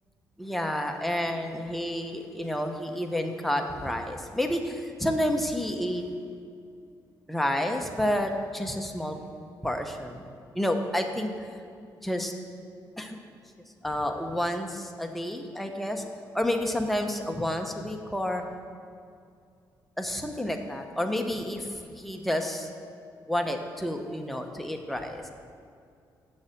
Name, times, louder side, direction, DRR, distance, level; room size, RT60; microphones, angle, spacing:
voice 1, 0.4-6.0 7.3-9.2 9.6-10.2 10.5-11.5 12.0-12.3 13.0-13.2 13.8-16.0 16.3-18.4 20.0-22.7 23.3-25.3, left 1 dB, ahead, 4 dB, 0.9 m, -30 dB
7.1 x 6.3 x 7.8 m, 2.4 s
cardioid pair, 95°, 8 cm